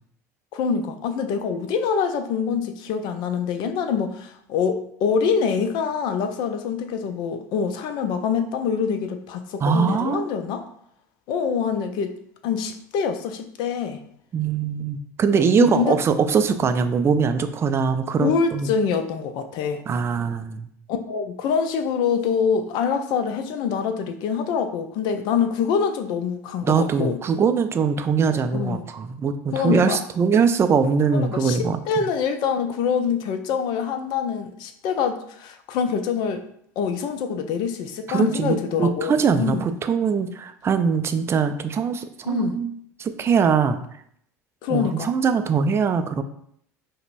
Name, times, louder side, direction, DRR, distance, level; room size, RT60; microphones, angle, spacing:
voice 1, 0.5-10.7 11.3-12.1 12.4-14.0 15.6-16.0 18.2-19.8 20.9-27.2 28.5-28.9 29.5-30.0 31.1-31.6 31.9-36.4 36.8-39.7 42.3-42.6 44.6-45.1, left 6 dB, 55° left, 8 dB, 0.5 m, -25 dB
voice 2, 9.6-10.2 14.3-18.7 19.9-20.7 26.6-31.8 38.1-42.7 43.0-43.8 44.7-46.2, right 6 dB, 30° right, 9 dB, 0.4 m, -22 dB
5.1 x 2.1 x 2.5 m, 0.69 s
hypercardioid pair, 75°, 9 cm